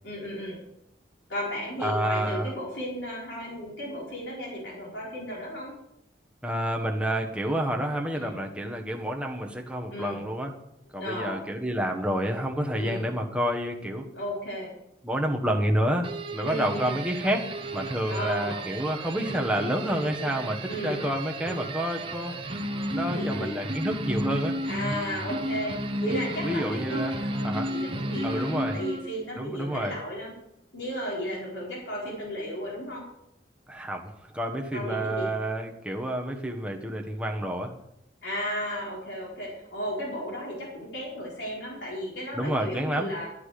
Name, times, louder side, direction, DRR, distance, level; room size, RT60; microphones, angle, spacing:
voice 1, 0.0-0.6 1.3-5.7 8.1-8.5 9.9-10.3 11.0-11.4 12.7-13.1 14.1-14.7 16.4-17.0 18.1-18.7 20.2-20.4 20.7-21.1 23.0-23.5 24.6-30.3 30.7-33.0 34.7-35.3 38.2-43.3, equal, 80° left, -4 dB, 4.4 m, -34 dB
voice 2, 1.8-2.5 6.4-10.5 10.9-14.1 15.0-22.3 22.9-24.5 26.4-27.7 28.2-28.8 29.4-30.0 33.7-37.7 42.3-43.1, equal, 5° right, 1 dB, 1.3 m, -29 dB
sound 1, 16.0-29.2, right 1 dB, 30° right, 1.0 m, -33 dB
12.0 x 10.5 x 4.9 m, 0.79 s
head